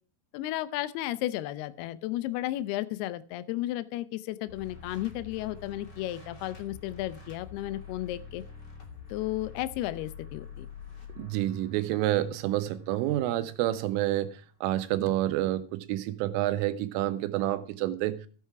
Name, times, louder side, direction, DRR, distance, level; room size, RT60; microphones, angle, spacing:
voice 1, 0.3-8.4 9.1-10.7, left 15 dB, 90° left, 14 dB, 2.2 m, -33 dB
sound 1, 4.5-14.4, left 5 dB, 30° left, 2.3 m, -47 dB
voice 2, 11.2-14.3 14.6-18.2, right 14 dB, 90° right, 11 dB, 3.6 m, -28 dB
14.0 x 8.8 x 4.7 m, 0.40 s
omnidirectional pair, 5.6 m